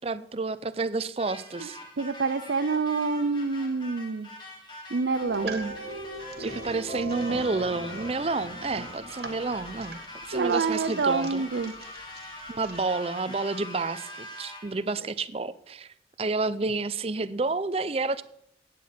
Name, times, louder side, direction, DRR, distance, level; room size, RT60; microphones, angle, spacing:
voice 1, 0.0-1.8 5.4-5.7 6.4-10.0 10.3-11.4 12.5-18.2, right 3 dB, 35° right, 15 dB, 0.5 m, -30 dB
sound 1, 1.2-14.9, left 2 dB, 25° left, 2.3 m, -43 dB
voice 2, 2.0-4.3 4.9-5.5 10.3-11.7, right 4 dB, 75° right, 9 dB, 0.5 m, -27 dB
sound 2, 4.9-9.2, right 2 dB, 85° left, 3.2 m, -40 dB
sound 3, 5.2-12.8, right 3 dB, 60° right, 1.3 m, -44 dB
14.5 x 9.2 x 4.3 m, 0.73 s
head